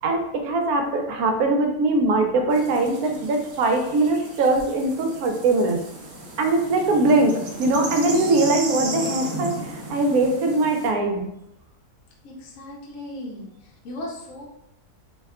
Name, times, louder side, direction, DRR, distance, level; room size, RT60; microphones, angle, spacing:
voice 1, 0.0-5.8 6.4-11.2, right 2 dB, 75° right, 3 dB, 1.0 m, -21 dB
sound 1, 2.5-10.9, right 2 dB, 60° right, 0.6 m, -35 dB
voice 2, 12.2-14.5, left 1 dB, 70° left, -2 dB, 1.0 m, -37 dB
2.8 x 2.2 x 3.4 m, 0.82 s
omnidirectional pair, 1.6 m